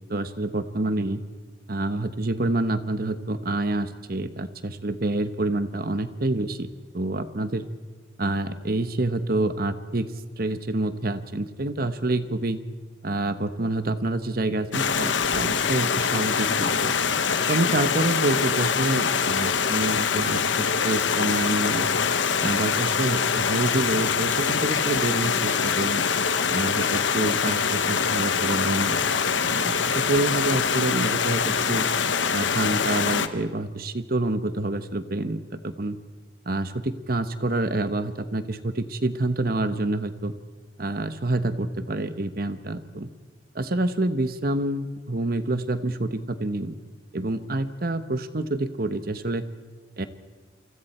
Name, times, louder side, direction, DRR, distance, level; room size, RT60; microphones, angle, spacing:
voice 1, 0.1-1.2 1.7-6.7 6.9-7.6 8.2-12.6 13.0-16.9 17.5-21.9 22.4-26.0 26.5-29.0 29.4-31.9 32.3-36.0 36.4-40.3 40.8-43.1 43.5-46.7 47.1-49.5 50.0-50.1, right 2 dB, 50° right, 11 dB, 1.1 m, -27 dB
Stream, 14.7-33.3, left 6 dB, 75° left, 1.0 m, -24 dB
28.0 x 24.5 x 4.4 m, 1.4 s
head